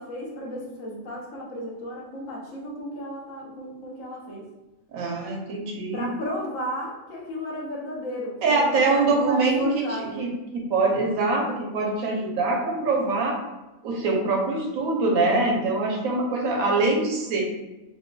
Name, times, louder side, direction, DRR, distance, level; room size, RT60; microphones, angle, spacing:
voice 1, 0.0-4.4 5.9-10.3, equal, 70° left, -3 dB, 1.1 m, -34 dB
voice 2, 4.9-6.1 8.4-9.7 10.0-13.4 13.8-17.4, right 3 dB, 80° right, 0 dB, 1.1 m, -24 dB
4.5 x 2.2 x 2.3 m, 1.0 s
omnidirectional pair, 1.4 m